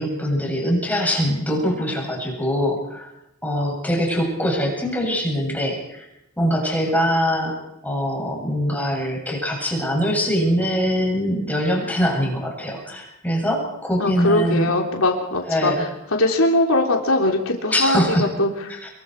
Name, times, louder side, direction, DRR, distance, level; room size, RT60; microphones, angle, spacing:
voice 1, 0.0-3.1 3.4-6.0 6.4-7.5 7.8-14.7 15.4-15.8 17.7-18.3 18.8-18.9, equal, 10° left, -1 dB, 8.0 m, -23 dB
voice 2, 14.0-15.7 16.1-18.8, left 1 dB, 70° left, 1 dB, 3.5 m, -21 dB
27.5 x 23.0 x 4.9 m, 0.83 s
head